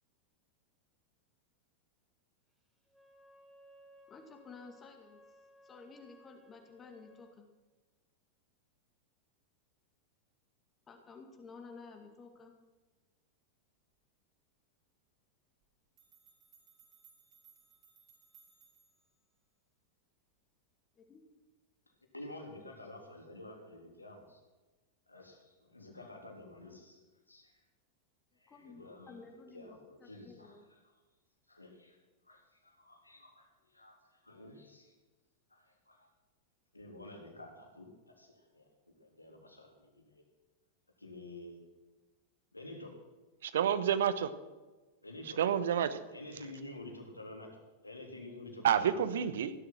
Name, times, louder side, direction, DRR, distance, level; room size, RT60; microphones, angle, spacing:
Wind instrument woodwind instrument, 2.9-7.3, equal, 5° right, 3.2 m, -61 dB
voice 1, 4.1-5.2 5.6-7.5 10.9-12.5 20.9-21.2 28.5-30.6, left 4 dB, 20° left, 3 dB, 2.3 m, -53 dB
sound 1, 15.6-15.7 16.0-19.1, right 6 dB, 35° right, 4.7 m, -63 dB
voice 2, 22.1-24.4 25.1-27.6 28.3-30.9 31.5-32.0 32.2-34.9 35.5-36.1 36.7-40.2 41.0-41.6 42.5-42.9 45.0-45.4 46.1-47.5 47.8-49.0, left 1 dB, 85° left, 1 dB, 3.3 m, -50 dB
voice 3, 43.4-44.3 45.4-46.0 48.6-49.5, right 9 dB, 60° right, 13 dB, 1.1 m, -29 dB
16.5 x 12.0 x 6.0 m, 1.2 s
figure-of-eight pair, 90°, 0 cm